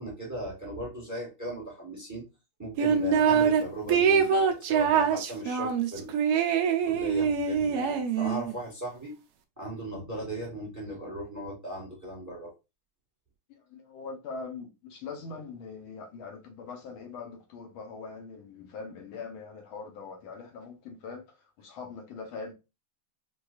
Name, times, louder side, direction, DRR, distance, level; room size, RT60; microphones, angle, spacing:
voice 1, 0.0-2.2 2.6-6.2 6.8-9.1 9.6-12.5, right 1 dB, 10° right, 0.9 m, -37 dB
sound 1, 2.8-3.6 3.9-8.5, right 6 dB, 85° right, 0.8 m, -24 dB
voice 2, 13.5-22.5, left 4 dB, 75° left, 1.5 m, -42 dB
4.5 x 2.3 x 2.3 m
omnidirectional pair, 2.3 m